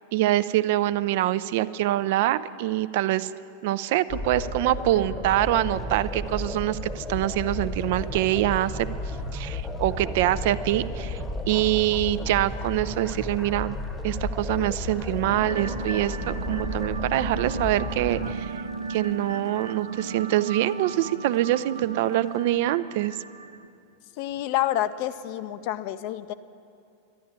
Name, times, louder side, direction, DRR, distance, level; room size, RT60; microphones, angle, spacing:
voice 1, 0.1-3.3 3.6-8.9 9.3-11.2 11.5-13.8 14.0-18.6 18.9-23.2, right 14 dB, 50° right, 15 dB, 0.3 m, -25 dB
sound 1, 4.1-18.3, left 2 dB, 15° left, 0.9 m, -34 dB
sound 2, 5.3-19.3 19.7-19.8 20.0-20.2 21.1-21.6 21.9-22.0 22.3-22.4, right 2 dB, 15° right, 0.7 m, -40 dB
sound 3, 15.3-23.7, right 4 dB, 80° right, 0.8 m, -35 dB
voice 2, 24.2-26.3, left 13 dB, 45° left, 14 dB, 0.5 m, -28 dB
11.0 x 11.0 x 8.8 m, 2.5 s
figure-of-eight pair, 90°, 0 cm